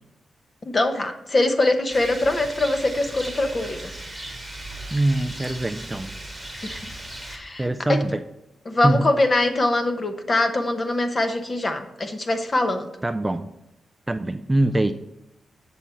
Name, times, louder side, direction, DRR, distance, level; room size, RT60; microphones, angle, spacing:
voice 1, 0.6-3.9 6.5-6.8 7.3-8.0 8.7-12.9, left 2 dB, 30° left, 8 dB, 0.8 m, -23 dB
Rain, 1.9-7.4, right 1 dB, 5° left, 1.5 m, -37 dB
voice 2, 4.9-6.1 7.6-8.2 8.8-9.1 13.0-13.5 14.1-14.9, right 1 dB, 15° right, 9 dB, 0.3 m, -23 dB
7.3 x 6.8 x 4.4 m, 0.87 s
wide cardioid pair, 130°, 0 cm